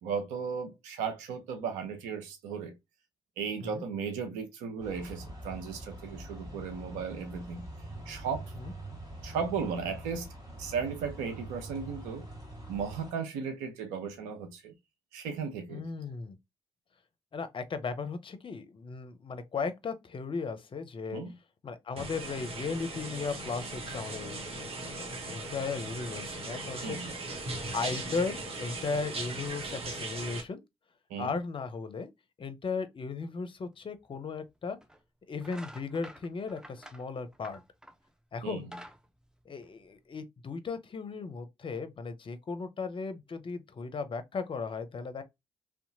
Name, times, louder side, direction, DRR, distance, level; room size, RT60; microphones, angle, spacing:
voice 1, 0.0-2.8 3.4-7.7 8.1-8.5 9.2-10.3 10.6-12.2 12.7-14.7 15.1-15.8 21.1-21.4 26.8-27.1 31.1-31.4 38.4-38.6, right 6 dB, 85° right, 0.6 m, -35 dB
sound 1, 4.8-13.1, right 1 dB, 30° right, 1.8 m, -44 dB
voice 2, 15.7-16.4 17.3-21.2 21.6-27.0 27.7-30.6 31.2-32.1 32.4-34.8 35.3-37.6 38.3-38.7 39.5-45.2, left 4 dB, 45° left, 0.6 m, -36 dB
sound 2, 22.0-30.4, right 2 dB, 50° right, 1.0 m, -38 dB
sound 3, 34.1-34.2 34.8-35.0 35.4-38.1 38.5-40.1, equal, 5° right, 0.6 m, -49 dB
2.7 x 2.2 x 2.6 m
hypercardioid pair, 40°, 12 cm